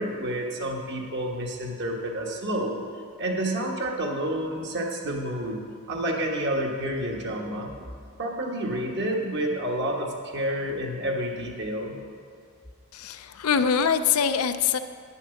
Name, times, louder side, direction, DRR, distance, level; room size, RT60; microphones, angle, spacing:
voice 1, 0.0-2.8 3.2-7.7 8.2-12.0, right 1 dB, 50° right, 0 dB, 1.5 m, -29 dB
voice 2, 12.9-14.8, left 7 dB, 70° left, 10 dB, 0.5 m, -23 dB
10.0 x 7.2 x 7.0 m, 2.2 s
head